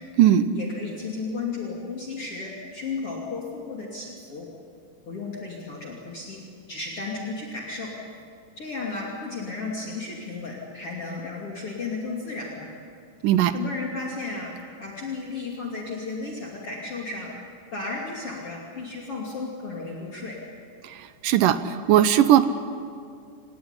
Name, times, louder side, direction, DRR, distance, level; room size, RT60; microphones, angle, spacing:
voice 1, 0.5-4.5 5.1-6.4 6.7-7.9 8.6-12.7 13.5-14.5 14.8-17.3 17.7-20.4, left 3 dB, 40° left, -3 dB, 3.4 m, -34 dB
voice 2, 21.2-22.4, right 11 dB, 75° right, 11 dB, 2.3 m, -18 dB
27.5 x 18.0 x 9.8 m, 2.3 s
omnidirectional pair, 4.3 m